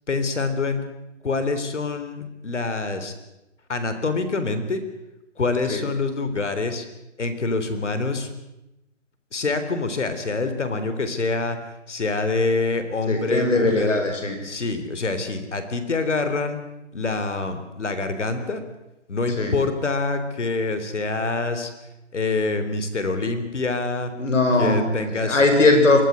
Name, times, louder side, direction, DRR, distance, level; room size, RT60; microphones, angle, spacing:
voice 1, 0.1-0.8 1.2-3.1 3.7-4.8 5.4-6.9 7.2-8.3 9.3-11.6 11.9-14.0 14.4-16.6 16.9-18.7 19.1-21.7 22.1-24.2 24.6-25.4, left 3 dB, 70° left, 10 dB, 3.8 m, -26 dB
voice 2, 13.1-14.4 19.4-19.6 24.2-26.0, left 2 dB, 90° left, 6 dB, 6.6 m, -19 dB
23.5 x 15.0 x 9.5 m, 0.93 s
hypercardioid pair, 175°, 36 cm